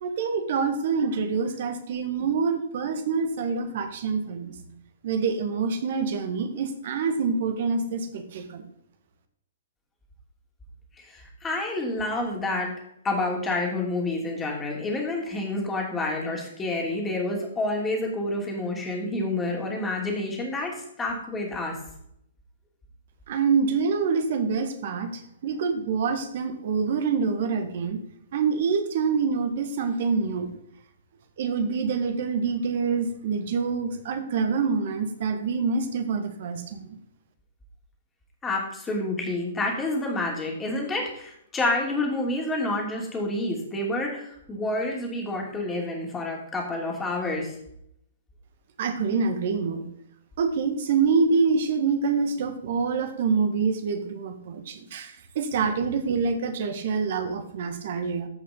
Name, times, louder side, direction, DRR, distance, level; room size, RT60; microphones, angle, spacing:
voice 1, 0.0-4.8 5.0-8.6 23.3-28.0 28.3-30.5 31.4-37.0 48.8-49.9 50.4-58.3, right 5 dB, 50° right, 8 dB, 1.6 m, -26 dB
voice 2, 11.0-12.7 13.0-21.8 38.4-47.5, left 2 dB, 15° left, 0 dB, 3.0 m, -28 dB
14.5 x 5.8 x 3.9 m, 0.72 s
figure-of-eight pair, 115°, 0 cm